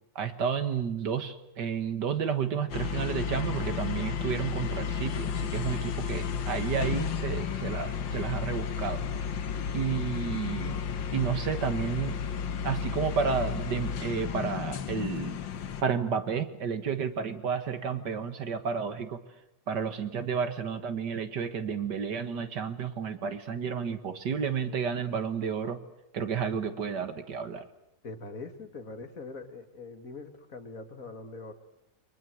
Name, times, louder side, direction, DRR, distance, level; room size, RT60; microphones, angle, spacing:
voice 1, 0.2-9.0 9.7-10.8 11.1-12.2 12.6-15.4 15.8-19.2 19.7-25.8 26.1-27.7, right 6 dB, 65° right, 9 dB, 2.1 m, -31 dB
sound 1, 2.7-15.8, left 7 dB, 85° left, 2.0 m, -33 dB
voice 2, 28.0-31.5, left 3 dB, 50° left, 7 dB, 2.4 m, -42 dB
29.5 x 23.5 x 7.7 m, 0.82 s
omnidirectional pair, 2.0 m